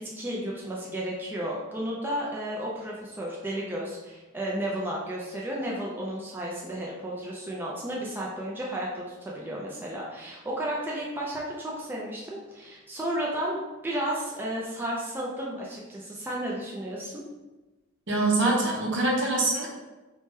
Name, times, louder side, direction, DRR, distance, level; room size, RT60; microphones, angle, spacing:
voice 1, 0.2-17.2, right 1 dB, 10° right, -5 dB, 0.4 m, -33 dB
voice 2, 18.1-19.7, right 2 dB, 60° right, -2 dB, 0.7 m, -24 dB
2.8 x 2.2 x 3.1 m, 1.1 s
head